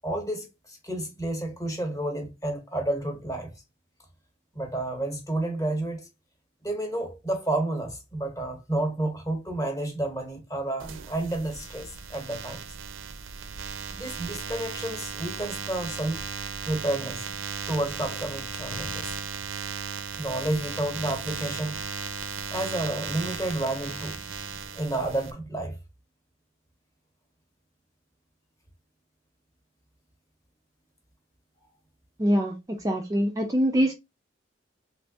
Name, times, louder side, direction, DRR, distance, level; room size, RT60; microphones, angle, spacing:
voice 1, 0.0-3.5 4.5-6.1 6.6-12.6 13.9-16.2 16.7-17.2 17.7-19.1 20.2-21.8 22.5-24.2 24.7-25.8, right 1 dB, 15° left, 0.9 m, -30 dB
sound 1, 10.8-25.3, right 6 dB, 90° right, 0.4 m, -36 dB
voice 2, 32.2-32.5 32.8-33.9, equal, 20° right, 0.3 m, -23 dB
3.3 x 2.6 x 2.6 m
head